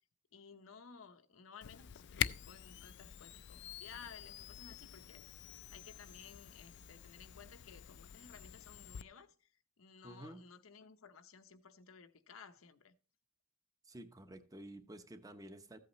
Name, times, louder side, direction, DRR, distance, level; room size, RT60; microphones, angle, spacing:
voice 1, 0.3-5.2 5.7-9.5 9.8-12.9, left 6 dB, 90° left, 0.8 m, -56 dB
Camera, 1.6-9.0, left 11 dB, 60° left, 0.4 m, -45 dB
voice 2, 10.0-10.4 13.8-15.8, right 1 dB, 20° right, 0.9 m, -51 dB
14.5 x 8.3 x 3.1 m
head